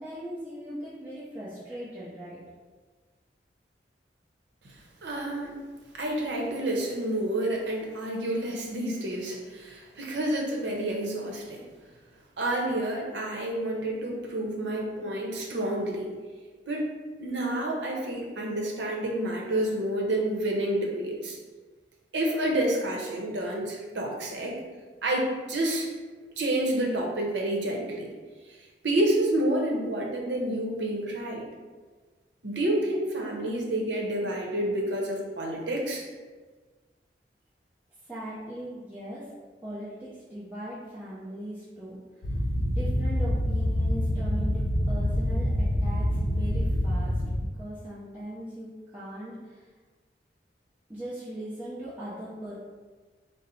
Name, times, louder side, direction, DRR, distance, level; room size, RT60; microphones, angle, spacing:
voice 1, 0.0-2.4 38.1-39.3 39.6-42.0 42.3-42.4 42.7-49.6 50.9-52.5, right 1 dB, 10° right, -11 dB, 0.6 m, -39 dB
voice 2, 5.0-5.6 5.9-11.7 12.4-16.1 16.7-16.9 17.2-21.4 22.1-24.6 25.0-25.9 26.4-28.1 28.8-31.4 32.4-36.0, right 1 dB, 85° right, -1 dB, 0.7 m, -29 dB
sound 1, 42.2-47.5, left 1 dB, 85° left, 0.5 m, -26 dB
3.9 x 2.0 x 4.1 m, 1.4 s
head